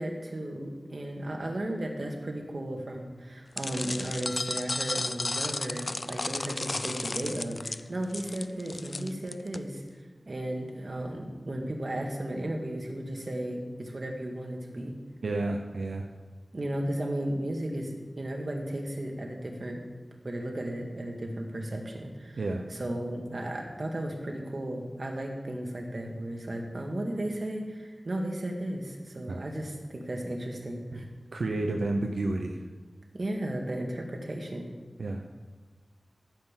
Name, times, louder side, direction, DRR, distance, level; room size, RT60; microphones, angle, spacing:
voice 1, 0.0-9.8 10.3-14.9 16.5-19.8 20.2-22.4 22.7-31.1 33.1-34.7, right 1 dB, 55° right, 1 dB, 2.2 m, -35 dB
sound 1, 3.6-9.6, left 2 dB, 45° left, 0.4 m, -34 dB
voice 2, 15.2-16.1 22.4-22.7 29.3-29.4 30.9-31.0 31.3-32.6 35.0-35.2, right 2 dB, 90° right, 3 dB, 0.8 m, -30 dB
14.5 x 5.7 x 7.5 m, 1.4 s
wide cardioid pair, 65°, 0 cm